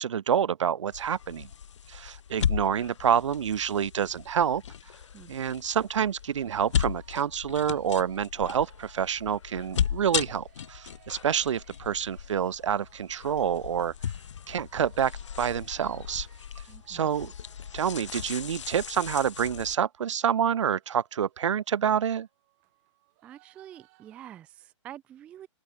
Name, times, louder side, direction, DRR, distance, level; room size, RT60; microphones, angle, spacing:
voice 1, 0.0-1.5 1.9-4.6 5.3-13.9 14.5-15.1 15.4-16.3 16.9-17.3 17.7-22.3, right 8 dB, 70° right, 0.9 m, -27 dB
sound 1, 0.9-19.8, left 8 dB, 70° left, 1.1 m, -36 dB
sound 2, 6.6-19.2 19.6-19.7 20.0-24.2, right 26 dB, 30° right, 5.9 m, -63 dB
voice 2, 16.7-17.1 23.2-25.5, right 11 dB, 10° right, 0.3 m, -47 dB
open air
hypercardioid pair, 155°, 16 cm